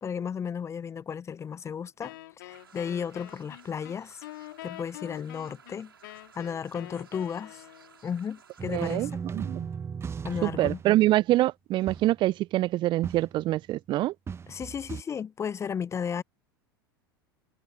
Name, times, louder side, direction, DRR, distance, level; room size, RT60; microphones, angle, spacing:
voice 1, 0.0-2.2 2.4-4.2 4.6-7.6 8.0-9.1 10.2-10.8 14.5-16.2, left 7 dB, 25° left, 0.6 m, -34 dB
Wind instrument woodwind instrument, 2.0-8.0, left 18 dB, 65° left, 4.4 m, -45 dB
sound 1, 2.5-9.1, right 6 dB, 85° right, 5.6 m, -56 dB
sound 2, 8.6-11.0 11.9-12.2 13.0-13.6 14.3-15.0, right 6 dB, 20° right, 1.0 m, -37 dB
voice 2, 8.7-9.7 10.4-14.1, right 16 dB, 40° right, 0.7 m, -25 dB
figure-of-eight pair, 80°, 12 cm